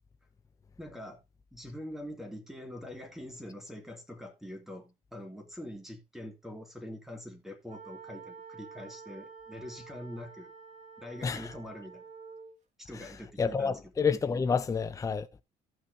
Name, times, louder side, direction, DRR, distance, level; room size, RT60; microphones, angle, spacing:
voice 1, 0.8-1.2 1.5-10.5 11.0-12.0 12.8-13.8, left 1 dB, ahead, 2.6 m, -44 dB
sound 1, 7.7-12.6, right 5 dB, 40° right, 2.5 m, -49 dB
voice 2, 11.2-11.5 12.9-13.1 13.4-15.3, left 5 dB, 20° left, 0.6 m, -29 dB
14.5 x 6.0 x 2.8 m
cardioid pair, 110°, 17 cm